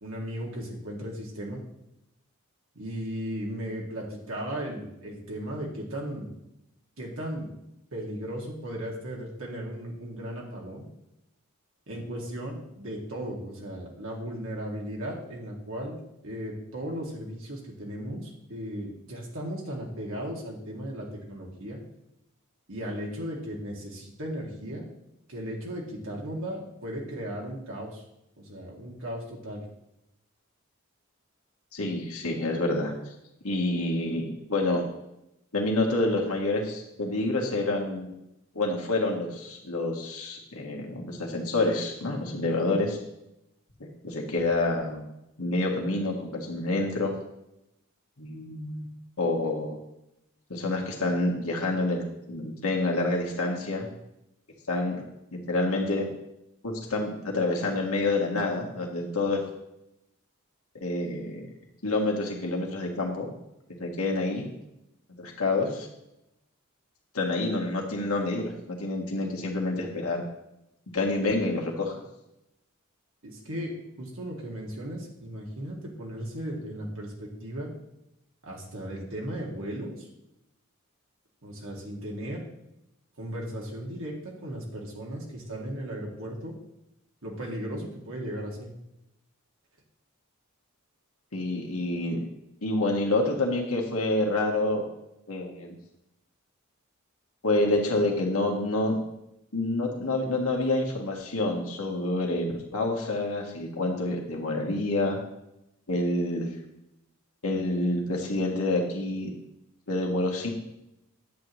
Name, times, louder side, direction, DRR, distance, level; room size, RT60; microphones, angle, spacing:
voice 1, 0.0-1.6 2.8-6.3 7.0-7.5 7.9-10.8 11.9-16.0 16.2-21.8 22.7-24.9 25.3-28.0 28.4-29.6 73.2-73.7 74.0-77.7 78.4-80.1 81.4-82.4 83.2-86.5 87.2-88.7, equal, 70° right, -2 dB, 2.0 m, -36 dB
voice 2, 31.7-32.9 33.4-34.8 35.5-38.1 38.6-43.0 44.0-45.0 45.4-47.1 48.2-48.9 49.2-49.8 50.5-53.9 54.7-55.0 55.3-56.1 56.6-59.4 60.8-61.4 61.8-63.3 63.8-64.4 65.2-65.9 67.1-68.5 68.8-70.2 70.9-72.0 91.3-92.2 92.6-94.8 95.3-95.8 97.4-99.0 99.5-105.2 105.9-106.5 107.4-109.3 109.9-110.5, left 2 dB, 75° left, 0 dB, 1.7 m, -28 dB
10.0 x 8.0 x 3.1 m, 0.85 s
head